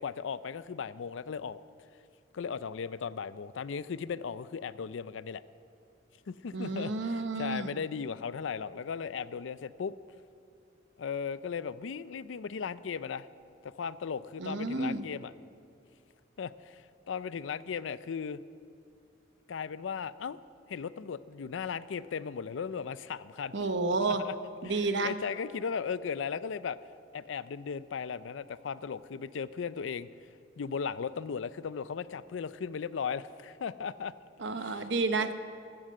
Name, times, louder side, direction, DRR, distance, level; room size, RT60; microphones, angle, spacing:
voice 1, 0.0-1.6 2.3-5.4 6.3-9.9 11.0-13.3 13.6-15.3 16.4-18.4 19.5-20.4 20.7-23.5 24.1-24.3 24.6-26.8 27.1-30.1 30.6-34.1 34.5-34.9 35.2-35.3, left 6 dB, 90° left, 16 dB, 0.4 m, -37 dB
voice 2, 6.5-7.7 14.4-15.0 23.5-24.2 24.6-25.1 34.4-35.3, right 3 dB, 70° right, 9 dB, 1.0 m, -30 dB
14.0 x 12.5 x 7.7 m, 2.4 s
head